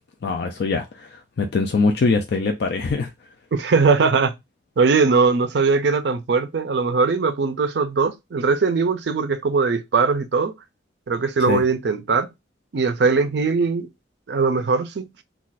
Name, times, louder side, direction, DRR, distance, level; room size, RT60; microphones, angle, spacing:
voice 1, 0.2-3.1 11.5-11.6, left 4 dB, 55° left, 0.4 m, -22 dB
voice 2, 3.5-4.3 4.8-10.5 11.1-12.3 12.7-13.9 14.3-15.1, right 4 dB, 60° right, 0.4 m, -20 dB
2.4 x 2.3 x 3.9 m
head